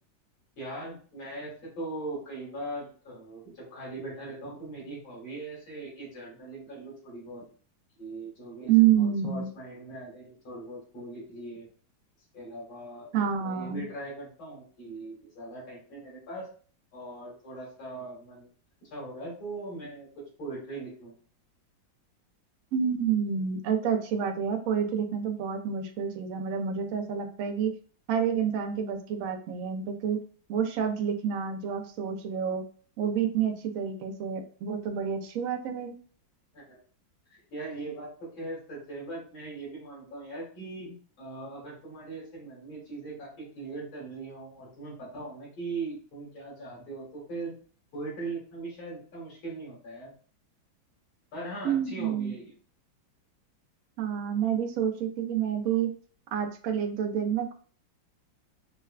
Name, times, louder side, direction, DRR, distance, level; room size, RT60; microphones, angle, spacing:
voice 1, 0.6-7.4 8.0-11.7 12.3-16.5 16.9-18.5 18.9-21.1 36.5-36.8 37.3-47.5 47.9-50.1 51.3-52.5, right 2 dB, 90° left, -6 dB, 2.7 m, -40 dB
voice 2, 8.7-9.5 13.1-13.9 22.7-27.7 28.1-30.2 30.5-32.6 33.0-36.0 51.6-52.3 54.0-55.9 56.3-57.5, right 8 dB, 75° right, 3 dB, 0.7 m, -28 dB
5.4 x 2.2 x 2.4 m, 0.41 s
omnidirectional pair, 2.1 m